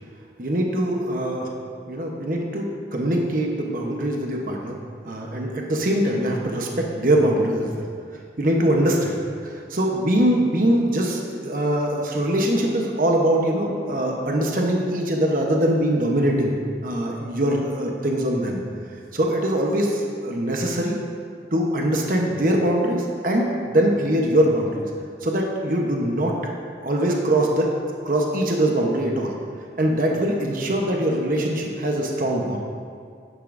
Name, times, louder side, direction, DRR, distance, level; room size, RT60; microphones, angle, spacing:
voice 1, 0.4-1.5 1.9-2.7 2.9-4.8 5.0-7.8 8.4-9.1 9.4-16.6 16.8-18.6 19.1-21.0 21.5-24.8 25.2-26.4 26.8-27.7 28.0-29.3 29.8-32.6, right 1 dB, 50° right, 0 dB, 0.9 m, -22 dB
11.0 x 10.5 x 2.6 m, 2.2 s
head